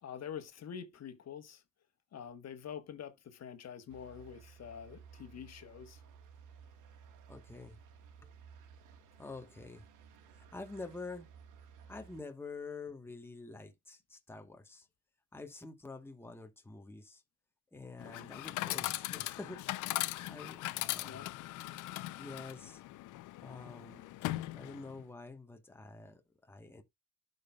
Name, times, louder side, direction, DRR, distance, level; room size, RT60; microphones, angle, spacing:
voice 1, 0.0-1.6 2.1-6.0 21.0-21.4, left 8 dB, 60° left, 1.3 m, -46 dB
sound 1, 3.9-12.2, right 6 dB, 90° right, 1.2 m, -57 dB
voice 2, 7.3-7.8 9.2-9.8 10.3-11.3 11.9-14.9 15.3-17.2 17.7-19.6 20.1-21.2 22.2-22.8 23.4-24.1 24.5-26.8, left 3 dB, 10° left, 1.2 m, -47 dB
Chatter / Coin (dropping), 18.0-25.0, left 17 dB, 85° left, 0.5 m, -39 dB
12.0 x 5.4 x 2.3 m
cardioid pair, 90°, 30 cm